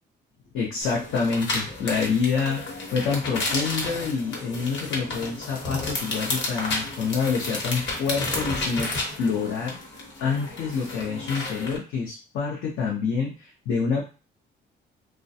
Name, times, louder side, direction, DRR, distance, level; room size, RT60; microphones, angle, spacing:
voice 1, 0.5-9.8 10.2-14.0, left 5 dB, 90° left, -3 dB, 0.6 m, -27 dB
sound 1, 0.8-11.8, left 2 dB, 65° left, 1.0 m, -32 dB
2.3 x 2.2 x 2.6 m, 0.34 s
cardioid pair, 90°, 20 cm